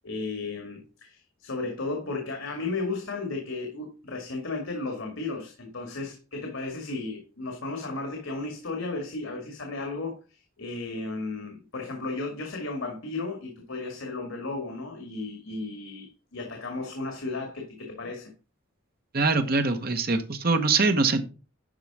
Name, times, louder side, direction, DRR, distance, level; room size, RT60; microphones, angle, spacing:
voice 1, 0.0-18.3, left 3 dB, 80° left, 2.0 m, -34 dB
voice 2, 19.1-21.2, right 3 dB, 50° right, 1.2 m, -23 dB
11.5 x 4.8 x 4.8 m
head